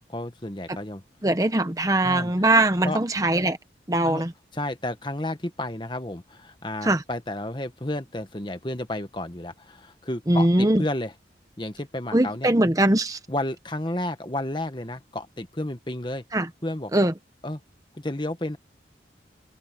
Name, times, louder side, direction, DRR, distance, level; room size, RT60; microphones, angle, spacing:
voice 1, 0.1-1.0 2.0-2.3 2.8-3.0 4.0-4.2 4.5-11.1 11.6-12.5 13.3-16.2 16.6-16.9 17.4-17.6 17.9-18.6, left 1 dB, 25° left, 1.4 m, -31 dB
voice 2, 1.2-3.6 3.9-4.3 6.8-7.0 10.3-10.8 12.1-13.2 16.3-16.5 16.9-17.1, right 1 dB, 20° right, 0.9 m, -21 dB
head